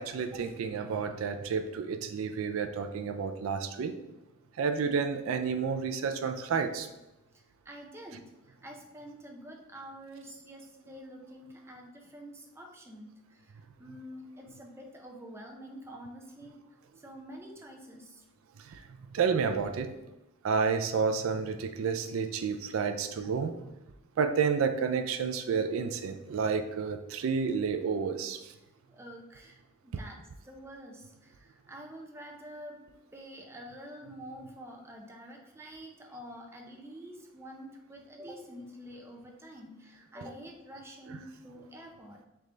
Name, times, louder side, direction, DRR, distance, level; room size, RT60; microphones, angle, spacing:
voice 1, 0.0-3.9 4.6-6.9 18.7-18.8 19.1-19.9 20.4-23.5 24.2-28.4 41.1-41.2, right 5 dB, 85° right, 8 dB, 0.4 m, -30 dB
voice 2, 7.7-13.5 13.8-16.6 17.0-18.2 23.2-23.4 28.9-32.8 33.1-42.3, equal, 15° right, 0 dB, 0.6 m, -47 dB
3.4 x 3.2 x 3.8 m, 0.96 s
head